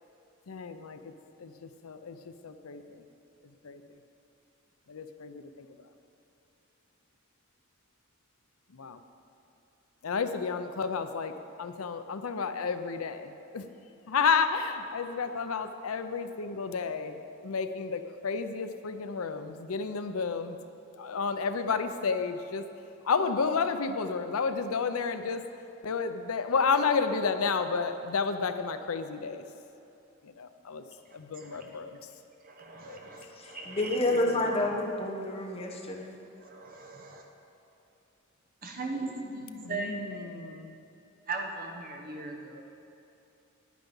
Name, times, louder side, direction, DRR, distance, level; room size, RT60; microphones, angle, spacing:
voice 1, 0.5-1.1 1.4-2.2 2.4-2.8 3.6-3.8 4.9-5.7 8.8-9.0 10.0-11.3 11.6-13.6 14.1-20.6 21.0-22.6 23.0-25.4 25.8-29.4 30.4-30.8 31.1-32.0 32.9-33.0 34.6-34.7 39.6-40.7, left 5 dB, 85° left, 9 dB, 0.6 m, -31 dB
voice 2, 31.4-31.7 32.4-34.2 36.4-37.2 38.6-40.5 41.3-42.6, right 3 dB, 45° right, 2 dB, 1.2 m, -39 dB
voice 3, 33.7-36.2, left 1 dB, 30° left, 0 dB, 1.2 m, -29 dB
10.5 x 9.3 x 5.5 m, 2.8 s
head